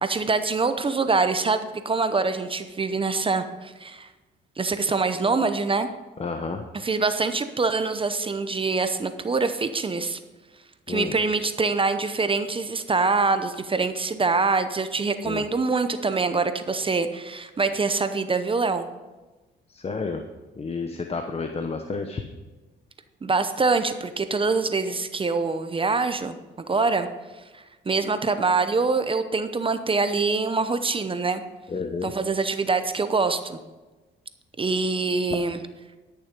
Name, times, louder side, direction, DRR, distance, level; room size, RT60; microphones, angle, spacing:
voice 1, 0.0-4.1 4.6-5.9 6.8-10.2 10.9-18.9 23.2-27.1 27.5-31.4 32.0-33.6 34.6-35.6, right 4 dB, 25° right, 10 dB, 0.7 m, -24 dB
voice 2, 6.2-6.6 10.9-11.1 15.2-15.5 19.7-20.2 20.6-22.2 31.7-32.1, left 4 dB, 30° left, 6 dB, 0.8 m, -30 dB
11.5 x 6.8 x 5.2 m, 1.2 s
cardioid pair, 90°, 20 cm